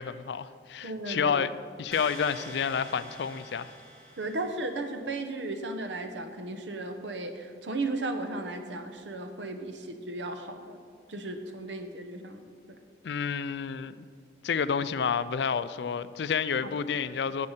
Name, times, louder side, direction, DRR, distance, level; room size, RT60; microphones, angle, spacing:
voice 1, 0.0-1.5 1.8-3.7 13.0-13.9 14.4-17.5, left 6 dB, 70° left, 0.4 m, -29 dB
voice 2, 0.8-1.3 4.2-10.8 11.1-12.8 16.6-16.8, right 2 dB, 80° right, 1.0 m, -35 dB
sound 1, 1.9-4.8, equal, 5° left, 2.3 m, -45 dB
10.5 x 7.6 x 5.6 m
head